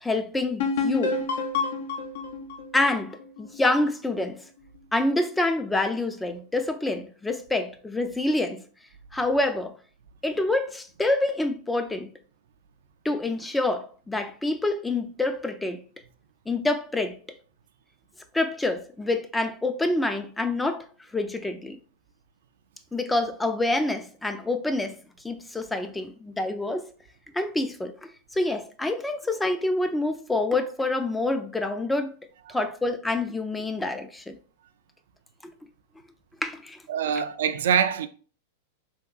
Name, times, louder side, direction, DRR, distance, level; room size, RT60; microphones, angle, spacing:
voice 1, 0.0-1.2 2.7-4.4 4.9-8.6 9.1-9.7 10.2-12.1 13.0-15.8 16.5-17.2 18.3-20.9 21.1-21.8 22.9-25.0 25.2-26.9 27.3-32.1 32.5-34.4 35.4-35.5 36.4-36.8, left 2 dB, 10° left, 0.3 m, -27 dB
sound 1, 0.6-4.2, left 4 dB, 75° left, 0.7 m, -29 dB
voice 2, 36.9-38.1, right 8 dB, 75° right, 0.3 m, -24 dB
3.5 x 2.8 x 2.3 m
hypercardioid pair, 120°, 0 cm